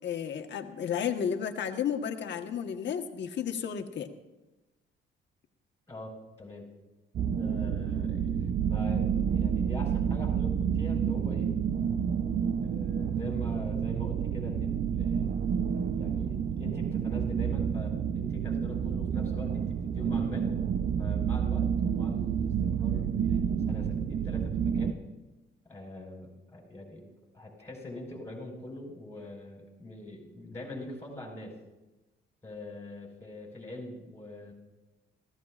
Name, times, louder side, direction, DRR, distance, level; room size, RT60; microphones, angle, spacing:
voice 1, 0.0-4.1, left 8 dB, 65° left, 5 dB, 1.3 m, -32 dB
voice 2, 5.9-6.7 7.3-11.5 12.6-15.3 15.6-20.5 21.0-25.0 25.6-27.0 27.3-31.5 32.4-34.5, left 1 dB, 15° left, -3 dB, 4.7 m, -44 dB
sound 1, 7.1-24.9, right 7 dB, 55° right, 0.7 m, -29 dB
26.5 x 15.5 x 2.5 m, 1.1 s
cardioid pair, 90°, 20 cm